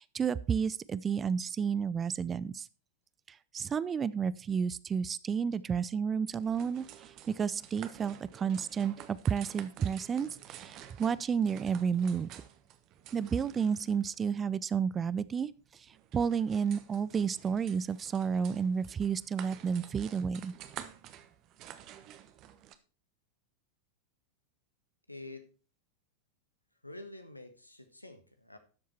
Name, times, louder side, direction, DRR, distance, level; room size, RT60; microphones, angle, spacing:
voice 1, 0.0-2.7 3.5-6.8 7.3-12.3 13.1-15.5 16.1-20.5, right 6 dB, 20° right, 19 dB, 0.5 m, -31 dB
sound 1, 6.3-22.8, right 11 dB, 35° right, 1.1 m, -51 dB
voice 2, 25.1-25.5 26.8-28.6, left 2 dB, 85° left, 8 dB, 1.5 m, -47 dB
13.0 x 7.4 x 4.4 m, 0.36 s
figure-of-eight pair, 90°, 0 cm